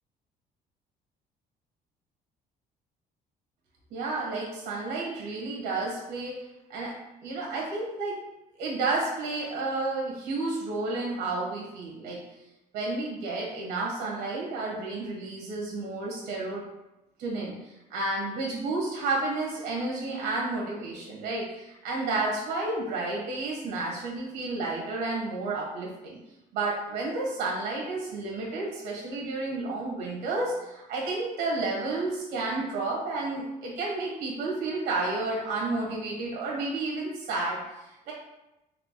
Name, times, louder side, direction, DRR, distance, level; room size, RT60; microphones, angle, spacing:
voice 1, 3.9-6.4 6.7-7.0 7.2-8.2 8.6-12.2 12.7-16.6 17.2-17.6 17.9-26.2 26.5-37.6 38.1-38.2, right 3 dB, 85° right, -2 dB, 1.4 m, -31 dB
3.6 x 3.5 x 2.2 m, 0.94 s
cardioid pair, 110°, 17 cm